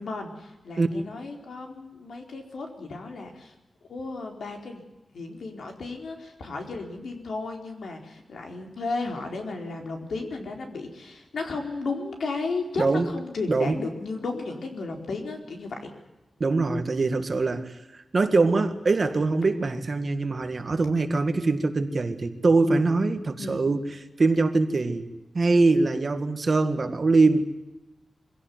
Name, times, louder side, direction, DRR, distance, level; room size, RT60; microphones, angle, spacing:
voice 1, 0.0-3.5 3.9-4.8 5.1-15.9 23.4-23.6, left 3 dB, 85° left, 3 dB, 4.5 m, -34 dB
voice 2, 12.8-13.1 13.5-13.8 16.4-17.7 18.1-23.9 24.2-25.1 25.3-27.4, right 3 dB, 40° right, 8 dB, 2.0 m, -23 dB
25.0 x 17.0 x 9.5 m, 1.0 s
wide cardioid pair, 150°, 0 cm